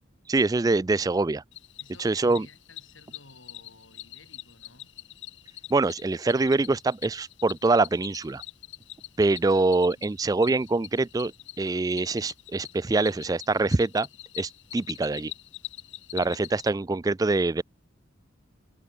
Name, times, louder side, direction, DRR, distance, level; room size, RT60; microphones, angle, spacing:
voice 1, 0.3-1.4 2.0-2.5 5.7-8.4 9.2-11.3 11.6-14.1 14.4-15.3 16.1-17.6, right 3 dB, 20° right, 0.3 m, -24 dB
Cricket, 1.5-16.7, left 15 dB, 70° left, 4.1 m, -44 dB
voice 2, 1.8-4.9 9.4-9.7 9.9-10.3, left 3 dB, 85° left, 6.8 m, -55 dB
head